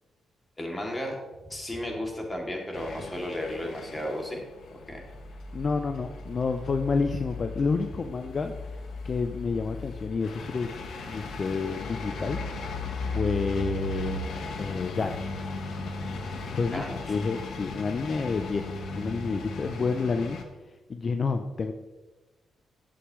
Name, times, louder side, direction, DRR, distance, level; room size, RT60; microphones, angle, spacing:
voice 1, 0.6-1.2 1.5-4.4 4.8-5.0 16.7-17.2, left 1 dB, 15° left, -1 dB, 2.7 m, -34 dB
sound 1, 2.7-20.4, left 3 dB, 70° left, 1.2 m, -37 dB
voice 2, 5.5-10.8 11.1-12.4 13.1-14.2 14.6-15.4 16.5-16.8 17.1-20.4 20.9-21.7, left 4 dB, 50° left, 7 dB, 0.6 m, -29 dB
11.5 x 7.7 x 3.2 m, 1.2 s
supercardioid pair, 65°, 0 cm